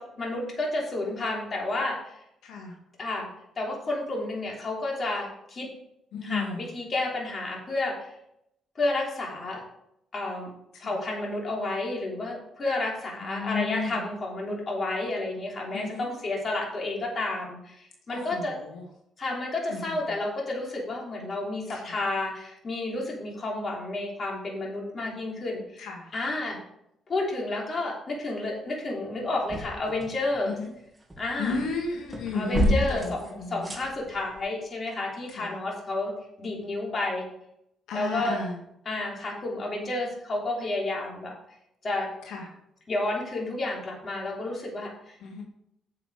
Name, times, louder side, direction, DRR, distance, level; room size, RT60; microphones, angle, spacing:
voice 1, 0.0-2.2 3.0-3.3 3.6-5.7 6.2-8.0 8.8-9.6 10.1-10.5 10.8-18.6 19.2-26.6 27.1-30.6 31.2-31.6 32.3-36.1 36.4-37.3 37.9-38.4 38.9-41.3 41.8-42.1 42.9-45.2, left 2 dB, 40° left, -2 dB, 3.6 m, -31 dB
voice 2, 6.1-6.7 13.2-13.9 15.7-16.0 18.1-18.4 19.7-19.8 25.8-26.0 30.5-30.7 31.4-33.0 33.4-33.5 35.4-35.5 37.9-38.5 42.3-42.4 45.2-45.4, left 4 dB, 85° left, 0 dB, 2.1 m, -32 dB
sound 1, 29.2-30.5 30.8-34.4, equal, 10° right, 2.6 m, -31 dB
9.4 x 6.9 x 5.1 m, 0.78 s
cardioid pair, 90°, 0 cm